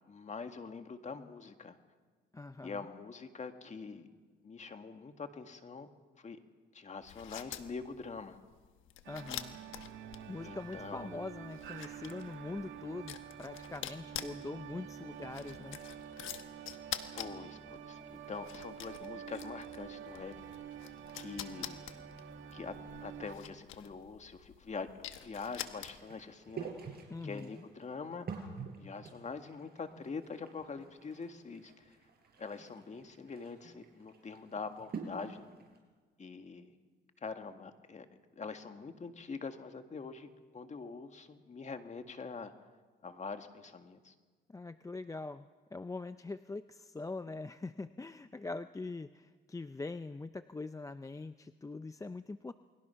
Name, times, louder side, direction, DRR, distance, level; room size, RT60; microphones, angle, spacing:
voice 1, 0.1-1.8 2.6-4.1 4.4-5.9 6.2-6.4 6.7-8.4 10.4-11.1 17.1-20.3 21.1-21.8 22.5-22.7 23.0-26.9 27.2-28.3 28.8-32.0 32.4-35.5 36.2-36.7 37.2-38.1 38.3-40.3 40.5-42.5 43.0-44.1, left 4 dB, 35° left, 7 dB, 1.9 m, -44 dB
voice 2, 2.3-2.9 9.1-9.6 10.3-15.8 27.1-27.7 44.5-52.5, left 3 dB, 15° left, 11 dB, 0.6 m, -43 dB
sound 1, 7.0-26.3, left 11 dB, 85° left, 1.3 m, -47 dB
sound 2, 9.0-23.3, right 8 dB, 70° right, 2.3 m, -48 dB
sound 3, 25.7-35.8, right 5 dB, 50° right, 5.3 m, -48 dB
29.0 x 21.0 x 5.8 m, 1.4 s
cardioid pair, 90°, 20 cm